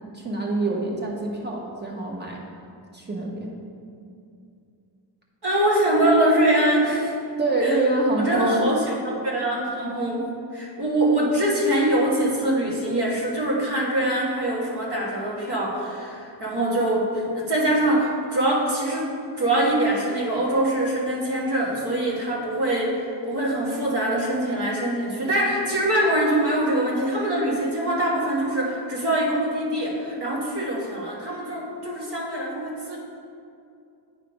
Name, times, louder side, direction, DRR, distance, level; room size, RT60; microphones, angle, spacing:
voice 1, 0.1-2.4 2.9-3.6 7.4-8.6, right 2 dB, 25° right, -2 dB, 1.0 m, -25 dB
voice 2, 5.4-7.1 7.6-7.8 8.2-9.0 9.2-10.2 10.5-33.0, right 1 dB, 60° right, -5 dB, 1.6 m, -23 dB
8.8 x 3.3 x 5.1 m, 2.5 s
wide cardioid pair, 145°, 44 cm